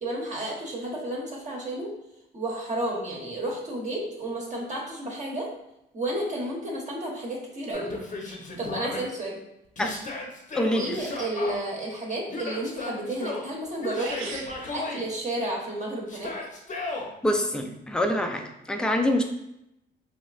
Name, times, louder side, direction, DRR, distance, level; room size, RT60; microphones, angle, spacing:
voice 1, 0.0-1.9 2.3-5.5 5.9-7.9 8.6-9.4 10.7-14.3 14.7-16.3, right 1 dB, 35° right, -2 dB, 0.9 m, -32 dB
Yell, 7.7-9.0 9.8-11.5 12.3-13.5 13.8-15.0 16.1-17.1, left 3 dB, 40° left, 0.7 m, -35 dB
sound 1, 13.6-13.7 14.0-14.6, right 5 dB, 90° right, 0.5 m, -35 dB
voice 2, 17.2-19.2, left 1 dB, 5° left, 4 dB, 0.4 m, -25 dB
3.1 x 3.0 x 2.4 m, 0.84 s
cardioid pair, 90°, 20 cm